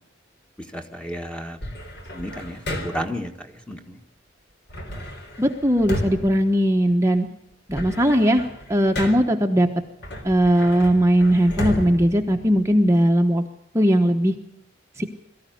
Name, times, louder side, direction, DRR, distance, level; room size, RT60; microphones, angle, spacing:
voice 1, 0.7-1.6 2.1-3.3 3.7-3.8, equal, 5° left, 5 dB, 1.6 m, -31 dB
sound 1, 1.6-3.3 4.7-7.2 7.5-9.5 10.0-13.0, left 1 dB, 60° left, 4.0 m, -33 dB
voice 2, 5.4-7.3 7.7-8.4 8.7-9.7 10.2-13.4 13.7-14.4 15.0-15.1, equal, 15° right, 2 dB, 1.1 m, -19 dB
22.0 x 14.0 x 9.3 m, 0.78 s
head